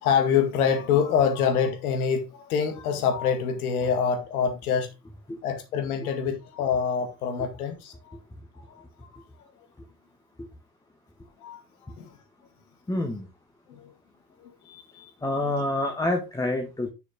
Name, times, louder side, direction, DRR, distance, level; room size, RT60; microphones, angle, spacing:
voice 1, 0.0-4.9 5.4-8.2 11.4-11.6 12.0-12.2 13.7-13.9 14.4-15.1 15.4-15.5, left 7 dB, 65° left, 2.1 m, -26 dB
voice 2, 12.9-13.3 15.2-16.9, left 2 dB, 5° left, 1.2 m, -27 dB
7.0 x 6.6 x 3.8 m
figure-of-eight pair, 70°, 48 cm